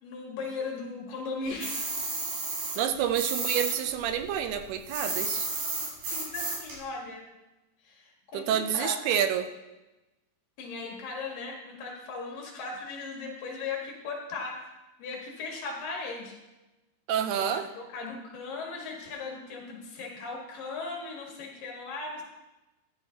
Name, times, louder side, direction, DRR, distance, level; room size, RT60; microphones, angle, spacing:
voice 1, 0.0-2.0 6.1-7.2 7.8-9.0 10.6-14.7 15.0-16.4 17.3-22.2, left 3 dB, 65° left, -1 dB, 3.3 m, -38 dB
sound 1, 1.6-3.8 4.0-6.8, right 3 dB, 70° right, 5.6 m, -32 dB
voice 2, 2.8-5.5 8.3-9.5 17.1-17.7, right 9 dB, 85° right, 8 dB, 2.8 m, -28 dB
14.0 x 10.5 x 2.9 m, 1.0 s
omnidirectional pair, 4.5 m